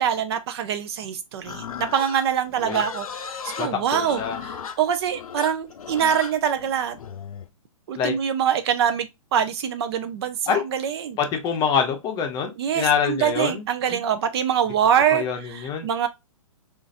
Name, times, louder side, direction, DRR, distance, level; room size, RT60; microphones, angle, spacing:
voice 1, 0.0-7.0 7.9-11.2 12.6-16.1, right 8 dB, 50° right, 0.5 m, -24 dB
Livestock farm animals working animals, 1.4-7.5, left 7 dB, 85° left, 0.5 m, -36 dB
voice 2, 3.6-4.4 8.0-8.1 10.5-10.6 11.2-13.6 13.9-14.0 15.1-15.9, left 7 dB, 25° left, 0.7 m, -25 dB
3.8 x 2.5 x 2.4 m
hypercardioid pair, 135°, 18 cm